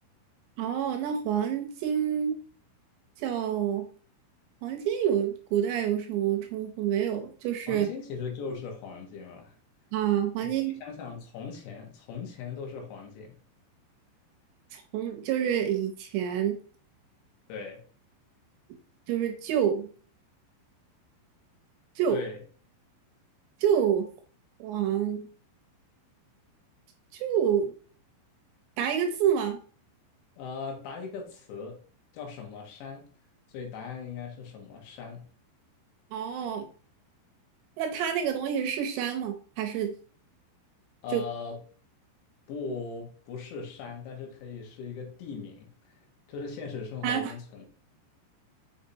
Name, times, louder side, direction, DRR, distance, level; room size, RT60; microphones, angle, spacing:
voice 1, 0.6-2.3 3.2-3.9 4.6-7.9 9.9-10.8 14.7-16.6 19.1-19.9 22.0-22.2 23.6-24.1 24.6-25.3 27.1-27.7 28.8-29.6 36.1-36.7 37.8-39.9 41.1-41.2 47.0-47.3, right 9 dB, 80° right, 2.8 m, -28 dB
voice 2, 7.7-9.6 10.4-13.4 17.5-17.8 22.1-22.4 30.4-31.8 32.1-33.1 33.5-35.3 41.0-41.6 42.5-45.7 46.3-47.8, left 5 dB, 70° left, 3.4 m, -39 dB
6.8 x 5.8 x 2.8 m
omnidirectional pair, 5.6 m